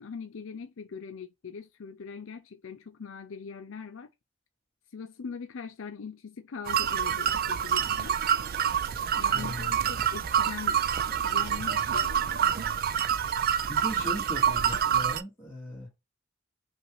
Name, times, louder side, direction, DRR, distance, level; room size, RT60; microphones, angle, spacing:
voice 1, 0.0-4.1 4.9-8.2 9.2-10.8 11.2-12.6, left 5 dB, 65° left, 0.5 m, -41 dB
sound 1, 6.7-15.2, right 8 dB, 45° right, 0.3 m, -27 dB
voice 2, 9.3-9.7 13.7-15.9, left 1 dB, 10° left, 2.2 m, -38 dB
5.1 x 2.5 x 3.0 m
head